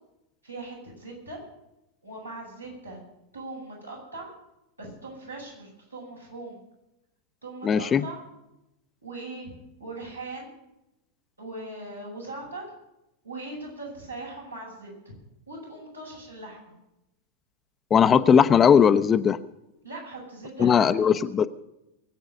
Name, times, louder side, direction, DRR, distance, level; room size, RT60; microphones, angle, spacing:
voice 1, 0.4-1.4 2.0-3.0 3.3-4.3 4.8-6.6 7.4-8.2 9.0-9.5 9.8-10.5 11.4-12.6 13.2-15.1 15.5-16.7 19.8-21.1, right 2 dB, 85° right, -4 dB, 7.7 m, -40 dB
voice 2, 7.6-8.1 17.9-19.4 20.6-21.5, left 7 dB, 25° left, 12 dB, 0.7 m, -18 dB
22.5 x 8.6 x 6.6 m, 0.88 s
figure-of-eight pair, 90°, 0 cm